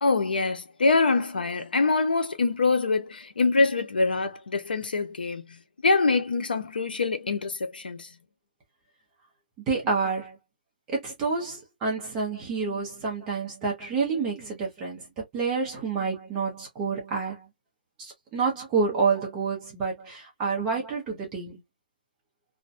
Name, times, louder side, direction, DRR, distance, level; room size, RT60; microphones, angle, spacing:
voice 1, 0.0-8.1, left 3 dB, 70° left, 0.7 m, -25 dB
voice 2, 9.7-10.4 10.9-15.1 15.3-17.5 18.0-21.6, right 4 dB, 10° right, 0.5 m, -28 dB
2.5 x 2.1 x 2.5 m
hypercardioid pair, 175°, 5 cm